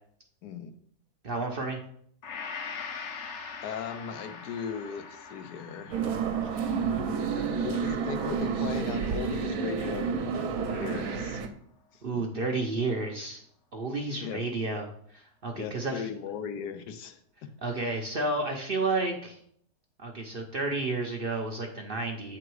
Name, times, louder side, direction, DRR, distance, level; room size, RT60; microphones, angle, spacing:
voice 1, 0.4-0.7 3.6-6.0 6.4-6.5 7.6-11.4 11.9-12.2 14.2-14.4 15.6-17.2, left 7 dB, 85° left, 8 dB, 1.3 m, -37 dB
voice 2, 1.2-1.8 12.0-13.4 13.7-16.1 17.6-19.4 20.0-22.4, right 3 dB, 50° right, 2 dB, 0.7 m, -31 dB
Gong, 2.2-10.5 11.0-11.1, left 5 dB, 55° left, 0.9 m, -43 dB
sound 1, 5.9-11.5, right 6 dB, 65° right, 1.1 m, -30 dB
7.8 x 3.7 x 4.7 m, 0.64 s
omnidirectional pair, 1.7 m